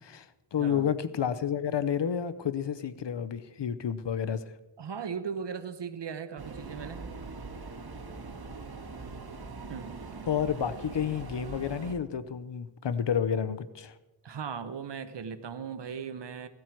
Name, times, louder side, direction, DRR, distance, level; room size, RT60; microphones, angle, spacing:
voice 1, 0.0-4.4 10.2-14.0, left 8 dB, 85° left, 13 dB, 0.8 m, -30 dB
voice 2, 0.6-0.9 4.8-7.1 9.7-10.0 14.2-16.5, right 6 dB, 85° right, 10 dB, 0.9 m, -38 dB
sound 1, 6.4-11.9, right 3 dB, 65° right, 1.6 m, -42 dB
16.5 x 13.0 x 4.5 m, 1.0 s
cardioid pair, 45°, 41 cm